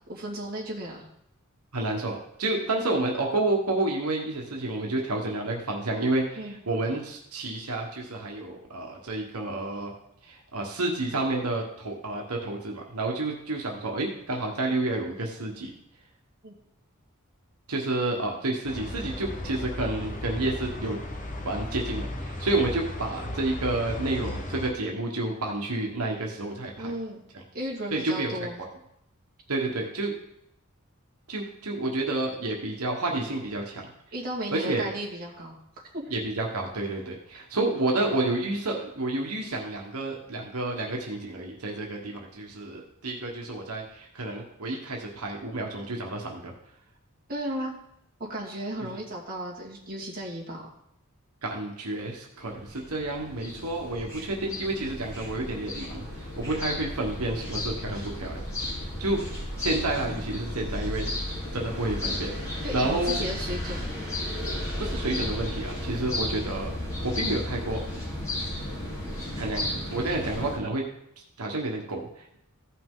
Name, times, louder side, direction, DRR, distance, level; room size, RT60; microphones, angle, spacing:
voice 1, 0.1-1.1 6.4-6.6 16.4-16.5 26.8-27.2 27.5-28.6 34.1-35.6 35.9-36.2 47.3-47.7 48.2-50.7 62.6-64.0, right 1 dB, 40° right, -4 dB, 2.2 m, -35 dB
voice 2, 1.7-9.9 10.2-15.7 17.7-21.0 21.4-26.9 27.9-28.5 29.5-30.1 31.3-33.9 34.5-34.9 36.1-46.5 51.4-58.4 58.8-59.2 59.6-61.1 61.5-63.2 64.8-66.7 67.0-67.8 69.3-70.8 71.4-72.4, right 2 dB, 90° right, 0 dB, 1.4 m, -30 dB
sound 1, 18.7-24.7, left 1 dB, 35° left, 1.0 m, -35 dB
sound 2, 52.4-70.6, left 1 dB, 15° left, 3.4 m, -34 dB
15.0 x 5.8 x 3.8 m, 0.78 s
head